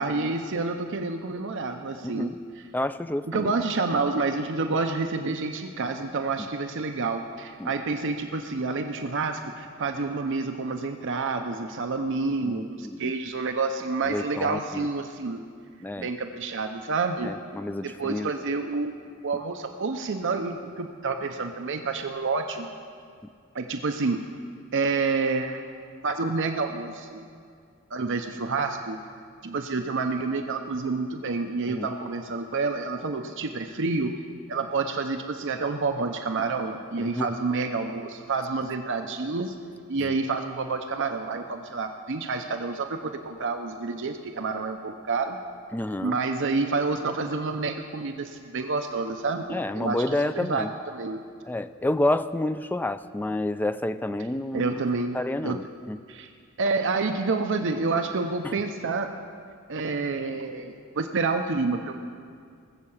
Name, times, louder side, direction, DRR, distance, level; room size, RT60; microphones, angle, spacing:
voice 1, 0.0-2.6 3.3-15.4 16.0-17.3 17.8-19.0 19.2-22.7 23.5-24.2 24.7-25.6 26.0-27.2 27.9-29.0 29.4-34.1 34.5-39.5 39.9-45.4 46.0-50.0 50.3-51.2 54.5-55.6 56.1-56.3 56.6-59.1 59.7-61.9, right 3 dB, 60° right, 5 dB, 0.7 m, -28 dB
voice 2, 2.0-2.4 2.7-3.5 7.6-7.7 12.4-13.1 14.1-14.9 15.8-16.1 17.2-18.3 31.7-31.9 37.0-37.3 40.0-40.1 45.7-46.2 49.5-50.7 51.5-54.8 55.1-56.0 58.4-58.5, left 1 dB, 10° left, 12 dB, 0.3 m, -29 dB
19.0 x 7.6 x 7.1 m, 2.2 s
head